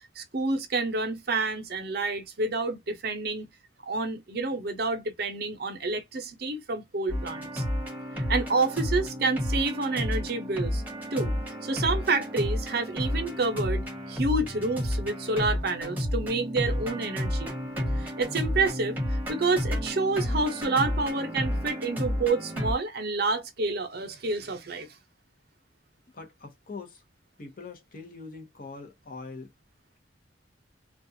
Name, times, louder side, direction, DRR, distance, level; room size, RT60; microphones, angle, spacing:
voice 1, 0.2-3.5 3.8-7.6 8.3-10.8 11.1-11.3 11.6-17.5 18.0-24.9, right 3 dB, 55° right, 0.7 m, -29 dB
sound 1, 7.1-22.7, equal, 10° right, 1.0 m, -31 dB
voice 2, 26.1-27.0 27.4-29.5, left 3 dB, 45° left, 0.8 m, -42 dB
2.3 x 2.3 x 2.6 m
head